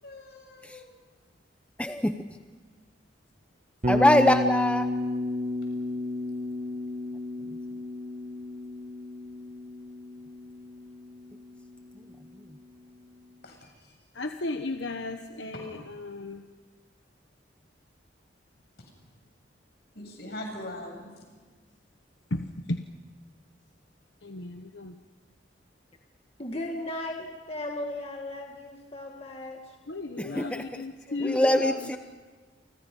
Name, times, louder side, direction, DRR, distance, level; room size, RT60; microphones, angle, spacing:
voice 1, 0.0-0.9 13.4-13.7 15.5-15.6 19.9-21.2, left 1 dB, 60° left, 2 dB, 7.7 m, -41 dB
voice 2, 1.8-2.2 3.9-4.9 12.0-12.1 30.2-30.8 31.2-32.0, left 1 dB, 5° left, 7 dB, 0.8 m, -23 dB
Bass guitar, 3.8-11.9, left 2 dB, 40° right, 1.3 m, -32 dB
voice 3, 14.1-16.4 22.3-22.4 22.7-22.8 24.2-24.9 29.9-31.4, left 2 dB, 80° left, 6 dB, 1.1 m, -34 dB
voice 4, 26.4-29.8 31.1-31.6, left 1 dB, 35° left, 1 dB, 2.0 m, -36 dB
29.5 x 25.0 x 5.5 m, 1.4 s
head